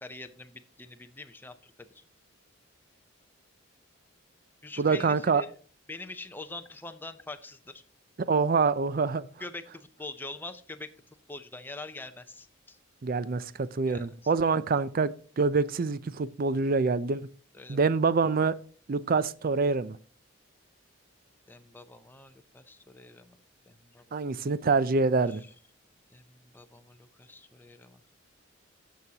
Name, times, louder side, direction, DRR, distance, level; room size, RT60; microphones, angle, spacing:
voice 1, 0.0-2.0 4.6-5.5 5.9-7.8 9.4-10.9 11.3-12.8 13.9-14.1 17.5-17.8 21.5-23.4 23.7-24.0 25.3-25.4 26.1-28.0, left 2 dB, 10° left, 0.6 m, -44 dB
voice 2, 4.8-5.4 8.3-9.3 13.0-17.3 17.7-18.5 18.9-20.0 24.1-25.4, right 4 dB, 45° right, 0.4 m, -26 dB
17.5 x 6.3 x 2.8 m
head